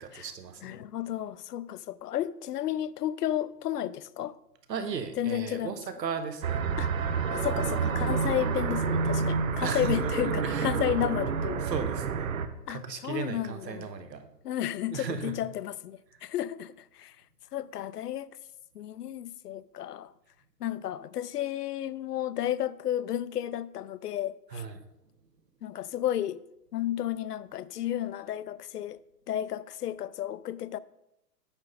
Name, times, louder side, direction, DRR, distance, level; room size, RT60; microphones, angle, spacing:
voice 1, 0.0-0.8 4.7-6.6 9.6-10.1 10.4-10.8 11.6-12.3 12.7-14.3 14.9-15.4 24.5-24.8, right 6 dB, 85° right, 1.3 m, -35 dB
voice 2, 0.6-4.3 5.2-5.8 6.8-6.9 7.3-11.6 12.7-13.9 14.4-17.1 17.5-18.3 18.7-20.1 20.6-24.6 25.6-26.4 26.7-29.0 29.3-30.8, left 11 dB, 70° left, 0.5 m, -32 dB
sound 1, 6.4-12.5, right 5 dB, 55° right, 0.7 m, -29 dB
8.8 x 6.7 x 4.0 m
hypercardioid pair, 175°, 48 cm